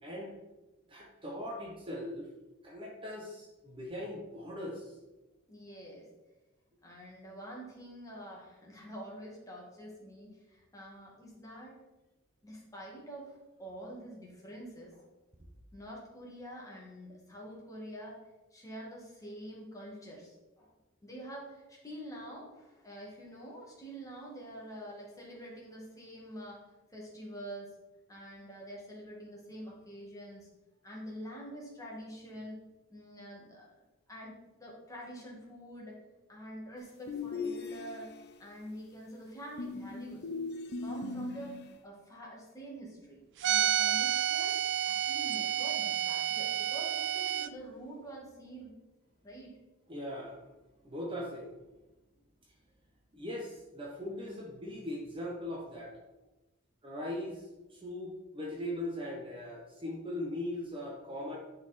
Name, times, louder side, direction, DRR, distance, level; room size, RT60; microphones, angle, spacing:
voice 1, 0.0-0.4 0.9-2.3 2.6-4.9 49.9-50.4 50.8-51.5 53.1-56.0 56.8-61.4, left 1 dB, 25° right, -1 dB, 1.1 m, -40 dB
voice 2, 5.5-6.1 6.8-11.8 12.4-15.0 15.7-18.2 18.5-20.7 21.0-26.6 26.9-27.7 28.1-30.5 30.8-32.6 32.9-33.7 34.1-36.0 36.3-38.1 38.4-40.2 40.8-44.5 44.8-48.7 49.2-49.5, right 1 dB, 15° left, -3 dB, 2.0 m, -46 dB
sound 1, 37.1-38.3 39.6-41.8, left 4 dB, 50° left, 0.6 m, -39 dB
sound 2, 43.4-47.5, right 10 dB, 55° right, 0.3 m, -30 dB
10.5 x 4.3 x 4.3 m, 1.1 s
head